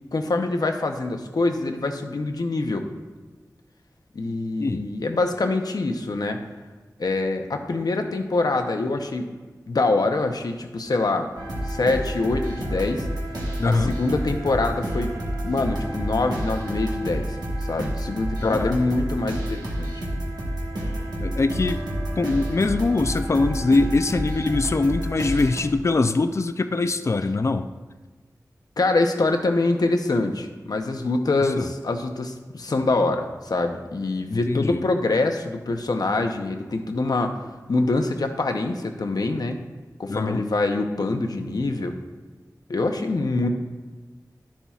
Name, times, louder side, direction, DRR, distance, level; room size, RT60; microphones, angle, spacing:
voice 1, 0.1-2.9 4.1-6.4 7.0-9.3 9.7-11.3 11.7-13.1 13.7-15.1 15.4-17.4 17.6-19.9 28.8-37.3 37.7-39.6 40.0-42.0 42.7-43.5, left 2 dB, 75° left, 5 dB, 0.7 m, -24 dB
sound 1, 11.4-25.6, right 1 dB, 90° right, 1.4 m, -29 dB
voice 2, 13.6-14.0 18.4-18.7 21.2-21.8 22.2-27.7 31.6-31.7 34.3-34.8 40.1-40.5, left 3 dB, 45° left, 9 dB, 0.4 m, -23 dB
11.5 x 7.1 x 2.4 m, 1.3 s
wide cardioid pair, 70°, 7 cm